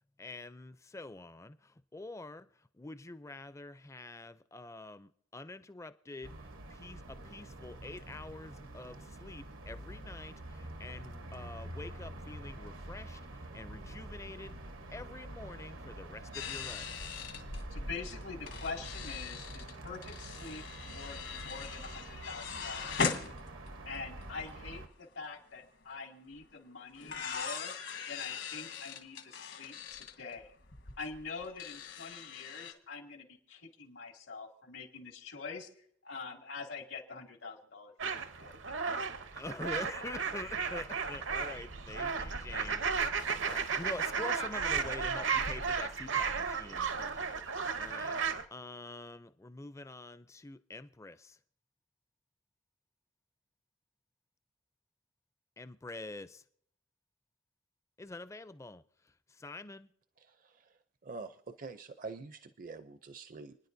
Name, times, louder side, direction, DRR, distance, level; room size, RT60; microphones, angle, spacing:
voice 1, 0.2-2.5 2.7-6.3 6.7-14.5 14.9-17.0 39.3-48.2 48.5-51.4 55.6-56.4 58.0-58.8 59.3-59.9, left 2 dB, 15° left, 0.4 m, -46 dB
sound 1, 6.2-24.9, right 1 dB, 85° right, 1.2 m, -47 dB
sound 2, 16.3-24.0 24.2-24.3 24.5-24.9 26.3-26.4 27.0-32.7, left 5 dB, 70° left, 1.3 m, -40 dB
voice 2, 17.7-23.4 23.9-27.7 28.1-30.5 31.0-35.7 36.0-38.1 38.4-38.6, left 4 dB, 85° left, 2.3 m, -45 dB
sound 3, 38.0-48.4, right 5 dB, 70° right, 0.8 m, -34 dB
voice 3, 60.2-63.6, right 4 dB, 45° right, 0.5 m, -46 dB
30.0 x 10.0 x 2.7 m
head